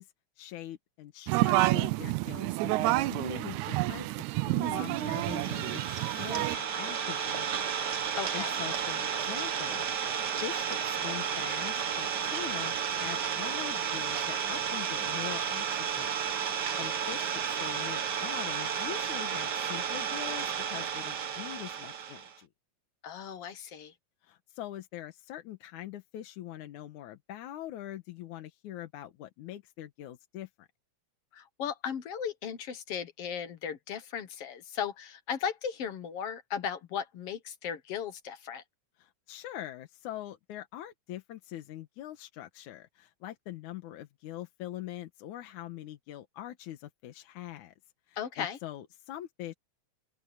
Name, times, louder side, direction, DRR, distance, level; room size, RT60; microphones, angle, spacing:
voice 1, 0.0-4.1 4.4-7.7 8.0-9.9 10.4-22.5 24.2-30.7 39.0-47.7 48.1-49.5, left 13 dB, 85° left, 2.6 m, -43 dB
sound 1, 1.3-6.6, right 19 dB, 85° right, 2.0 m, -29 dB
Idling, 4.6-22.3, right 7 dB, 50° right, 1.3 m, -32 dB
voice 2, 8.2-8.5 23.0-23.9 31.3-38.6 48.2-48.6, left 7 dB, 60° left, 2.0 m, -36 dB
open air
omnidirectional pair, 3.4 m